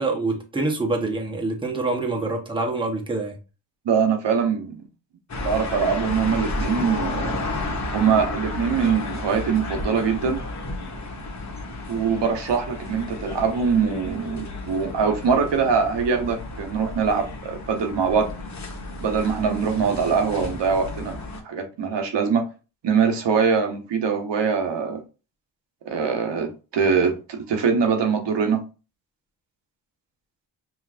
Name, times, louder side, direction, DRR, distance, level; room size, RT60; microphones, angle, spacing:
voice 1, 0.0-3.4, right 3 dB, 10° right, 1.2 m, -26 dB
voice 2, 3.8-4.8 5.4-7.4 7.9-10.4 11.9-18.3 19.0-21.1 21.4-22.5 22.8-25.0 25.8-28.6, right 6 dB, 75° right, 1.0 m, -23 dB
sound 1, 5.3-21.4, left 2 dB, 40° left, 1.3 m, -32 dB
5.4 x 3.1 x 2.5 m
wide cardioid pair, 115°, 43 cm